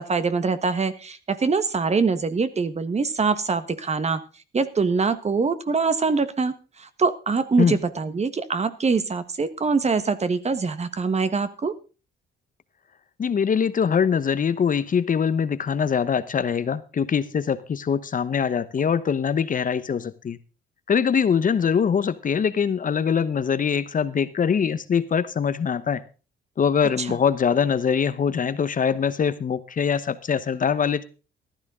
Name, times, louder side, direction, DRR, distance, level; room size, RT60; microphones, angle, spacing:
voice 1, 0.0-4.2 4.5-11.7 27.0-27.1, right 4 dB, 35° right, 12 dB, 1.4 m, -24 dB
voice 2, 13.2-20.4 20.9-26.0 26.6-31.0, left 7 dB, 40° left, 14 dB, 1.0 m, -23 dB
14.5 x 12.5 x 3.7 m, 0.34 s
cardioid pair, 90°, 20 cm